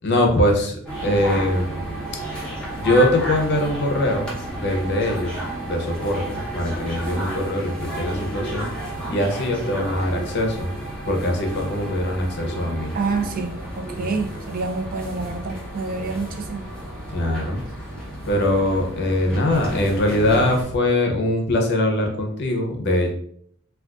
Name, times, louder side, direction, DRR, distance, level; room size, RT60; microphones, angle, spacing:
voice 1, 0.0-1.7 2.8-4.3 4.5-8.7 9.1-10.7 11.1-12.9 17.1-17.6 18.3-23.1, left 1 dB, 50° left, 2 dB, 0.6 m, -22 dB
sound 1, 0.9-20.6, right 1 dB, 5° left, 0.8 m, -32 dB
voice 2, 12.9-16.7, right 4 dB, 40° right, 5 dB, 0.4 m, -28 dB
2.4 x 2.3 x 3.5 m, 0.65 s
head